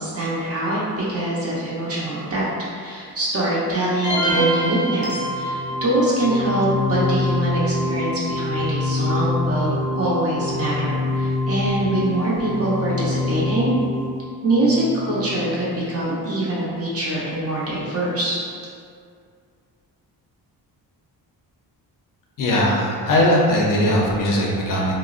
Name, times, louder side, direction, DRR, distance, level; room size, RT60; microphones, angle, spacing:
voice 1, 0.0-13.7 14.4-18.4, right 1 dB, 40° right, -7 dB, 0.7 m, -24 dB
sound 1, 4.0-5.9, right 2 dB, 10° right, 0.9 m, -23 dB
sound 2, 5.0-16.0, left 2 dB, 70° right, 0.9 m, -26 dB
voice 2, 22.4-24.9, left 1 dB, 55° left, -3 dB, 0.5 m, -19 dB
3.6 x 2.0 x 2.4 m, 2.2 s
wide cardioid pair, 160°, 39 cm